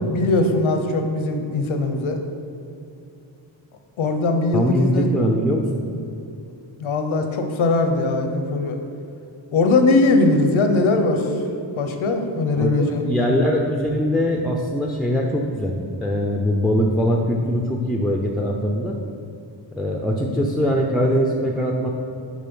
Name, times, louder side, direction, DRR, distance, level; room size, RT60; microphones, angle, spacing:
voice 1, 0.1-2.2 4.0-5.1 6.8-8.8 9.5-11.3 11.8-13.0, left 2 dB, 80° left, 5 dB, 0.9 m, -20 dB
voice 2, 4.5-5.8 12.6-19.0 19.7-21.9, equal, ahead, 0 dB, 0.4 m, -22 dB
7.5 x 5.2 x 5.4 m, 2.7 s
wide cardioid pair, 140°, 47 cm